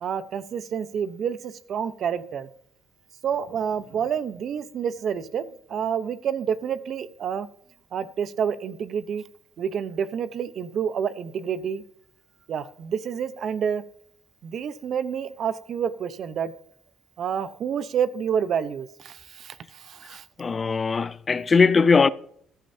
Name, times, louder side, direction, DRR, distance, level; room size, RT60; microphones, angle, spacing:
voice 1, 0.0-2.5 3.2-7.5 7.9-9.2 9.6-11.8 12.5-13.8 14.4-16.5 17.2-20.3, right 7 dB, 55° right, 0.9 m, -28 dB
voice 2, 20.4-22.1, left 5 dB, 30° left, 0.5 m, -19 dB
14.5 x 13.0 x 2.8 m
cardioid pair, 110°, 0 cm